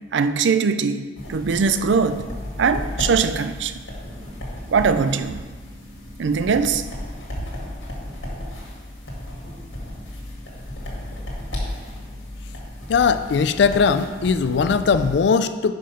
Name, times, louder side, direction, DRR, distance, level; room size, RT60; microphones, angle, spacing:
voice 1, 0.1-2.2 2.6-3.8 4.7-5.4 6.2-6.8, right 5 dB, 70° right, 11 dB, 0.4 m, -21 dB
sound 1, 1.2-15.2, left 1 dB, 85° left, 1.9 m, -34 dB
voice 2, 12.9-15.7, left 5 dB, 60° left, 11 dB, 0.3 m, -19 dB
5.3 x 5.3 x 5.6 m, 1.4 s
head